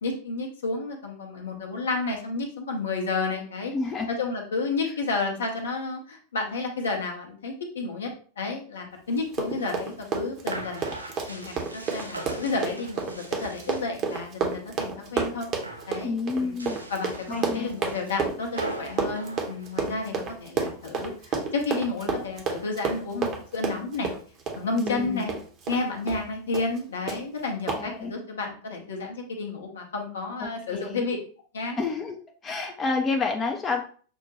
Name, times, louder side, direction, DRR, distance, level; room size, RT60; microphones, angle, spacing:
voice 1, 0.0-3.7 4.1-8.1 8.4-10.9 11.3-15.5 15.9-16.5 16.9-24.1 24.5-25.3 25.7-31.2 31.5-31.8, left 3 dB, 65° left, 2 dB, 0.8 m, -31 dB
voice 2, 3.7-4.1 16.0-16.8 17.3-17.7 24.8-25.3 27.7-28.1 30.4-31.0 31.8-32.2 32.4-33.8, left 4 dB, 20° left, 3 dB, 0.5 m, -29 dB
Run, 9.2-25.8 26.1-26.2 26.5-26.8 27.1-27.2 27.7-27.8, right 5 dB, 35° right, 0.9 m, -30 dB
sound 1, 9.4-14.3 14.6-15.2 15.5-16.0 16.5-20.3, right 2 dB, 80° right, 0.7 m, -41 dB
6.3 x 2.2 x 2.9 m, 0.43 s
figure-of-eight pair, 90°, 0 cm